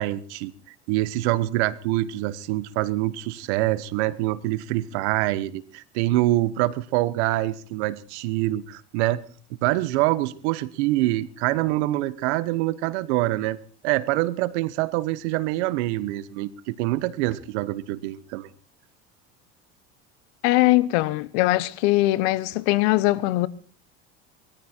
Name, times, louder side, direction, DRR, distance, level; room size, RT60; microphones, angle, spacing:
voice 1, 0.0-9.2 9.6-13.6 13.8-18.5, right 16 dB, 80° right, 1.2 m, -25 dB
voice 2, 20.4-23.5, left 18 dB, 75° left, 1.1 m, -21 dB
20.0 x 13.5 x 4.5 m
supercardioid pair, 105°, 34 cm